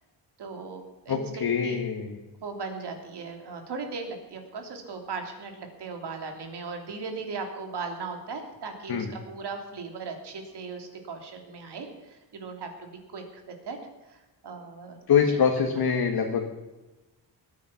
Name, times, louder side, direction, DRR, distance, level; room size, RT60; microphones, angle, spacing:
voice 1, 0.4-1.8 2.4-13.8 14.0-15.0, right 4 dB, 65° right, 4 dB, 3.0 m, -38 dB
voice 2, 1.1-2.2 8.9-9.1 15.1-16.4, left 7 dB, 55° left, 2 dB, 1.7 m, -24 dB
20.5 x 9.2 x 5.9 m, 1.1 s
wide cardioid pair, 140°, 44 cm